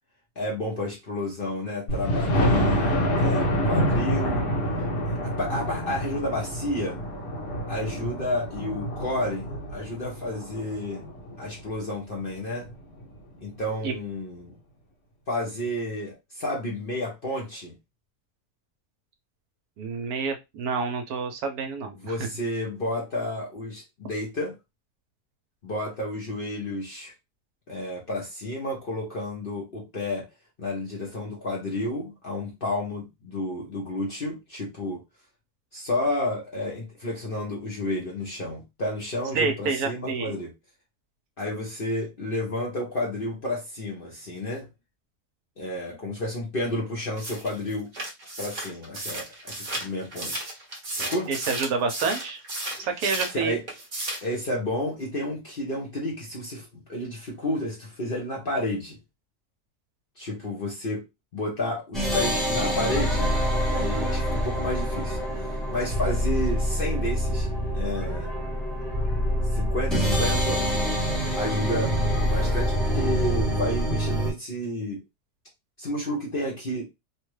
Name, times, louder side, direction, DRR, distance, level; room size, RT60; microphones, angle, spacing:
voice 1, 0.4-4.5 5.1-7.0 7.7-11.0 11.4-12.7 13.4-14.5 15.3-17.8 22.0-24.6 25.6-27.1 27.7-30.3 30.6-35.0 35.7-40.5 41.4-44.7 45.6-47.9 48.4-50.5 51.0-51.3 52.8-52.9 53.3-53.6 54.2-59.0 60.2-61.0 61.3-63.3 63.7-65.2 65.7-67.5 67.7-68.4 69.5-70.6 71.3-72.0 72.3-75.0 75.8-76.9, left 1 dB, 45° left, 0.7 m, -31 dB
Thunder, 1.9-11.6 12.2-12.3 12.7-12.8 13.0-13.1, equal, 85° left, 1.6 m, -27 dB
voice 2, 19.8-22.1 39.3-40.3 51.3-52.4 52.8-53.5, right 5 dB, 70° right, 1.1 m, -28 dB
sound 1, 47.2-53.4 53.7-54.3, right 1 dB, 35° right, 0.9 m, -34 dB
sound 2, 61.9-74.3, equal, ahead, 0.5 m, -26 dB
3.2 x 2.1 x 3.1 m
omnidirectional pair, 1.7 m